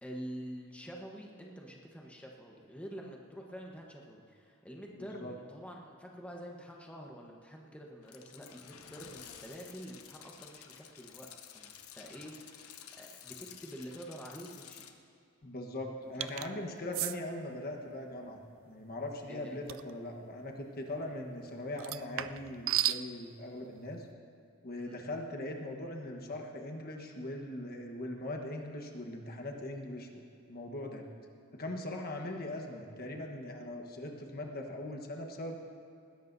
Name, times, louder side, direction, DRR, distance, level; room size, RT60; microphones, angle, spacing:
voice 1, 0.0-11.3 11.5-12.7 13.0-14.8 16.2-16.5 16.9-17.0 19.3-19.6 24.8-25.0, equal, 5° left, -1 dB, 1.1 m, -47 dB
voice 2, 5.0-5.3 15.4-18.4 18.6-24.1 24.6-31.0 31.5-35.5, left 1 dB, 45° left, 2 dB, 1.3 m, -40 dB
sound 1, 8.0-14.9, left 8 dB, 75° left, 0.9 m, -52 dB
sound 2, 16.2-16.5 16.9-17.2 19.7-19.9 21.8-23.0, right 13 dB, 60° right, 0.4 m, -33 dB
20.0 x 16.5 x 2.7 m, 2.5 s
head